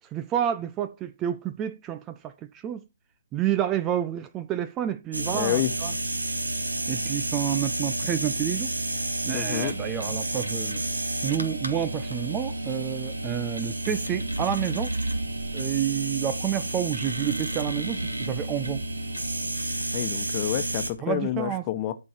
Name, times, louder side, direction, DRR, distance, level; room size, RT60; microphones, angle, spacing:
voice 1, 0.1-2.8 3.3-5.9 6.9-8.7 9.2-10.8 11.2-14.9 15.5-18.8 21.0-21.6, right 10 dB, 15° right, 0.5 m, -29 dB
sound 1, 5.1-20.9, right 2 dB, 75° right, 2.6 m, -30 dB
voice 2, 5.3-5.7 9.3-9.7 19.9-21.9, left 13 dB, 25° left, 1.2 m, -28 dB
13.5 x 5.4 x 4.6 m
figure-of-eight pair, 140°, 0 cm